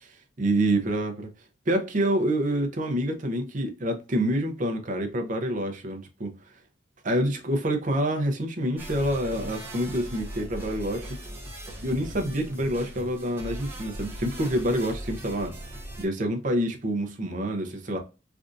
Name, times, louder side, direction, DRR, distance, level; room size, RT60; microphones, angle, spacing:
voice 1, 0.4-1.3 1.7-6.3 7.0-11.2 11.8-15.5 16.0-18.0, right 1 dB, 45° right, 0.7 m, -27 dB
sound 1, 8.8-16.0, equal, 10° right, 0.8 m, -39 dB
3.4 x 2.5 x 2.5 m
head